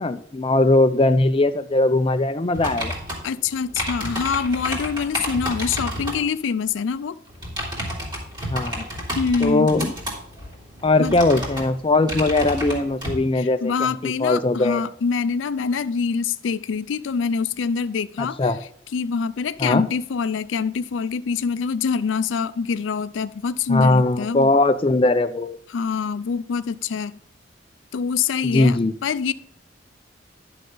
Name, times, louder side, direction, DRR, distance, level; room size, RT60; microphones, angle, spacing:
voice 1, 0.0-2.9 8.5-8.9 9.4-9.9 10.8-14.8 18.2-18.6 19.6-19.8 23.7-25.5 28.4-28.9, left 2 dB, 30° left, 9 dB, 0.5 m, -20 dB
sound 1, 2.5-6.2 7.3-13.2, equal, 25° right, 2.7 m, -31 dB
voice 2, 3.2-7.2 9.1-9.7 11.0-11.2 13.4-18.6 18.9-24.5 25.7-27.2 27.9-29.3, left 5 dB, 85° left, 15 dB, 0.4 m, -25 dB
11.0 x 6.5 x 3.9 m, 0.63 s
head